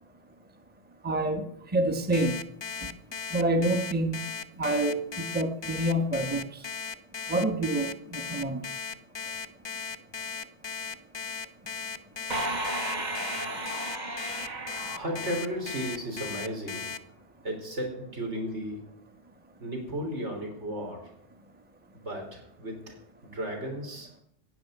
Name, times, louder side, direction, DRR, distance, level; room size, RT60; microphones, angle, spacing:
voice 1, 1.0-1.4 1.7-2.4 3.3-4.2 4.6-5.0 5.3-6.4 7.3-8.6, right 1 dB, 10° right, 6 dB, 1.0 m, -27 dB
Alarm, 2.1-17.0, left 6 dB, 35° left, 0.4 m, -36 dB
sound 1, 12.3-16.0, right 1 dB, 40° right, 1.5 m, -34 dB
voice 2, 14.9-16.9 17.4-18.8 19.6-21.1 22.0-23.0 23.2-24.1, equal, 75° right, 2 dB, 4.0 m, -34 dB
15.5 x 6.5 x 9.2 m, 0.74 s
omnidirectional pair, 1.2 m